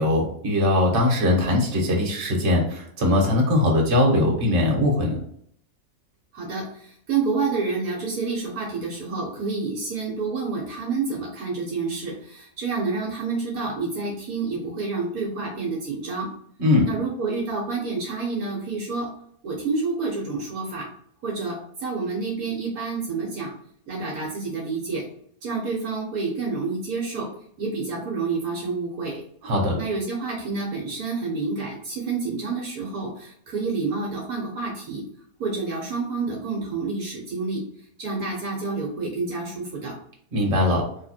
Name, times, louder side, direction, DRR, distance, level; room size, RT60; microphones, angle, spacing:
voice 1, 0.0-5.2 16.6-16.9 29.4-29.7 40.3-40.8, left 1 dB, 50° right, -1 dB, 1.4 m, -21 dB
voice 2, 6.3-16.3 16.9-19.1 19.4-20.9 21.2-23.5 23.9-25.0 25.4-27.3 27.6-29.2 29.7-35.0 35.4-37.6 38.0-39.9, right 4 dB, 70° right, -2 dB, 1.3 m, -28 dB
3.7 x 2.9 x 4.1 m, 0.65 s
omnidirectional pair, 1.7 m